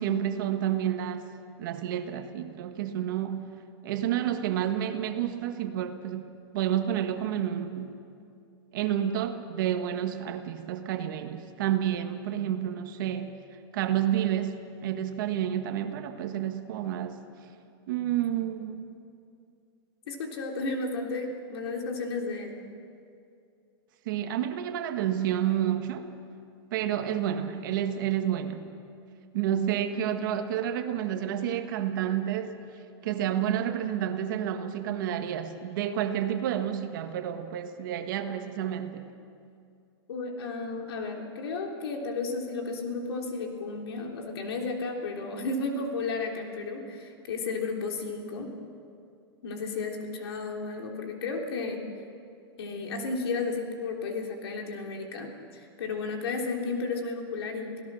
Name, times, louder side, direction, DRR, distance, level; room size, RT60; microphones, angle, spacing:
voice 1, 0.0-1.3 1.6-3.5 3.8-6.3 6.5-8.0 8.7-13.4 13.7-17.2 17.9-18.9 24.0-26.1 26.7-28.7 29.3-32.6 33.0-39.1, right 10 dB, 55° right, 7 dB, 1.6 m, -30 dB
voice 2, 20.1-22.6 40.1-48.5 49.4-51.8 52.6-57.8, left 3 dB, 75° left, 2 dB, 3.5 m, -33 dB
28.0 x 17.0 x 6.3 m, 2.5 s
supercardioid pair, 165°, 13 cm